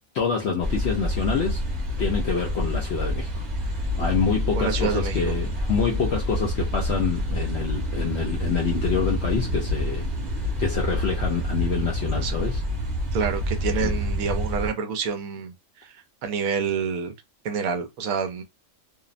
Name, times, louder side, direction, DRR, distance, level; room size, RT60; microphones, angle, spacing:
voice 1, 0.1-1.6 2.0-3.3 3.9-12.6 13.7-14.0, left 5 dB, 70° left, 0.6 m, -27 dB
sound 1, 0.6-14.7, equal, 30° right, 1.0 m, -27 dB
voice 2, 4.6-5.3 12.2-12.4 13.1-15.5 15.8-15.9 16.2-17.1 17.4-18.4, right 6 dB, 70° right, 0.9 m, -27 dB
2.7 x 2.0 x 2.4 m
omnidirectional pair, 1.6 m